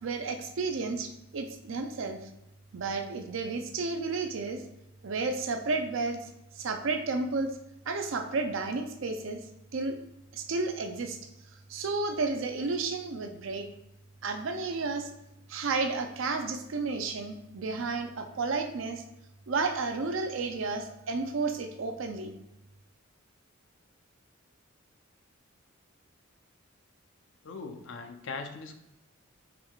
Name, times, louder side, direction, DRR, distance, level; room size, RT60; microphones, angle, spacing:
voice 1, 0.0-2.2 2.7-4.6 5.0-6.3 6.6-7.5 7.9-9.4 9.7-10.0 10.3-11.2 11.7-13.7 14.2-15.1 15.5-19.0 19.5-22.3, right 3 dB, 65° right, 6 dB, 0.5 m, -32 dB
voice 2, 27.4-28.7, left 4 dB, 60° left, 6 dB, 0.5 m, -40 dB
4.7 x 3.6 x 2.3 m, 0.87 s
head